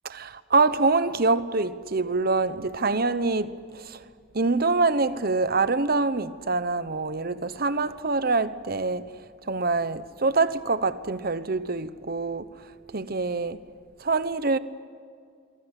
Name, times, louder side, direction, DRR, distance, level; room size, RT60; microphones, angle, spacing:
voice 1, 0.1-4.0 4.3-9.1 9.5-12.6 12.9-13.6 14.0-14.6, right 3 dB, 45° right, 1.0 m, -25 dB
25.5 x 25.0 x 8.3 m
head